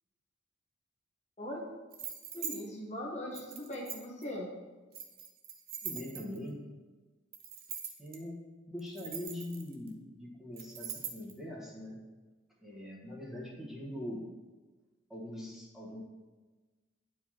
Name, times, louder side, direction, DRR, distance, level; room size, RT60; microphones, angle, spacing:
sound 1, 1.9-2.6 3.3-4.2 4.9-6.5 7.3-8.2 8.8-9.9 10.6-11.3, right 8 dB, 45° right, 0.7 m, -42 dB
voice 1, 2.3-4.5, left 1 dB, 35° left, -3 dB, 1.0 m, -40 dB
voice 2, 5.8-6.7 8.0-8.4 8.7-12.0 12.6-14.3 15.1-16.0, left 1 dB, ahead, -5 dB, 1.3 m, -42 dB
11.0 x 4.8 x 2.9 m, 1.3 s
head